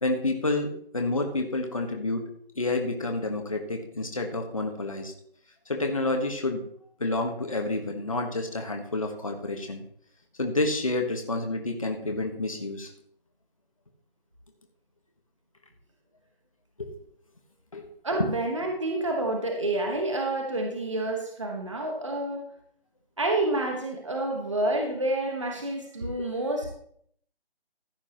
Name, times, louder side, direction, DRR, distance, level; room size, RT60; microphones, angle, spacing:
voice 1, 0.0-2.3 2.5-5.1 5.7-6.7 7.0-9.8 10.4-12.9 16.8-16.9 17.7-17.8, left 2 dB, 35° left, 3 dB, 1.5 m, -29 dB
voice 2, 18.0-22.5 23.2-26.7, right 2 dB, 30° right, 2 dB, 1.5 m, -28 dB
15.0 x 9.7 x 3.1 m, 0.63 s
figure-of-eight pair, 180°, 30 cm